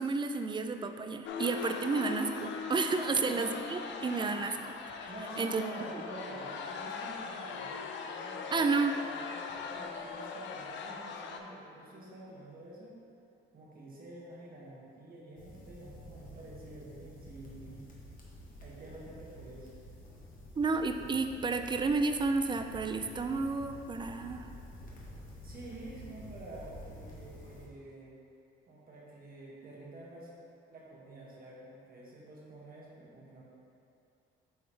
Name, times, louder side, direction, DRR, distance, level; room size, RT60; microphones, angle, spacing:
voice 1, 0.0-4.6 5.0-5.1 5.4-5.6 5.9-6.0 8.5-8.9 20.6-24.5, right 4 dB, 25° right, 7 dB, 0.4 m, -31 dB
sound 1, 1.3-11.4, left 5 dB, 70° left, 0.5 m, -40 dB
voice 2, 3.2-3.5 5.0-13.0 13.5-17.9 18.6-19.7 25.4-28.1 28.7-30.3 30.7-33.4, right 2 dB, 50° right, -5 dB, 1.4 m, -48 dB
sound 2, 15.4-27.7, left 1 dB, 45° left, 1.2 m, -50 dB
7.8 x 3.7 x 3.3 m, 2.6 s
cardioid pair, 90°, 20 cm